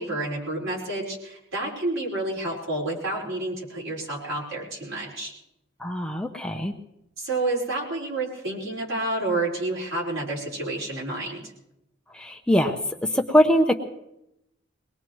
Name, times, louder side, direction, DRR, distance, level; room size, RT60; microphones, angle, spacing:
voice 1, 0.0-5.3 7.2-11.4, right 2 dB, 85° right, -4 dB, 4.7 m, -29 dB
voice 2, 5.8-6.7 12.1-12.8 13.1-13.7, equal, 5° left, 4 dB, 0.8 m, -22 dB
22.5 x 19.5 x 3.1 m, 0.86 s
head